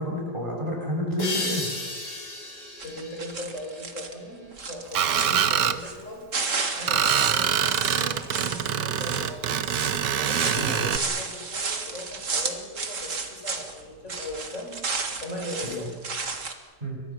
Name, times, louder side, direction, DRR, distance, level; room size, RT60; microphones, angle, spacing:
voice 1, 0.0-1.7 10.6-10.9 15.6-15.9 16.8-17.0, equal, 30° right, -1 dB, 6.8 m, -30 dB
sound 1, 1.2-4.6, left 2 dB, 75° left, 4.8 m, -35 dB
voice 2, 2.5-6.3 6.7-9.5 10.1-15.9, left 1 dB, 45° left, -1 dB, 7.4 m, -39 dB
sound 2, 2.8-4.1 4.5-6.0 6.3-13.8 14.1-16.5, right 4 dB, 50° right, 2.2 m, -32 dB
Screech, 4.9-5.8 6.9-11.0, right 9 dB, 85° right, 1.6 m, -25 dB
28.5 x 24.0 x 6.0 m, 1.4 s
omnidirectional pair, 1.8 m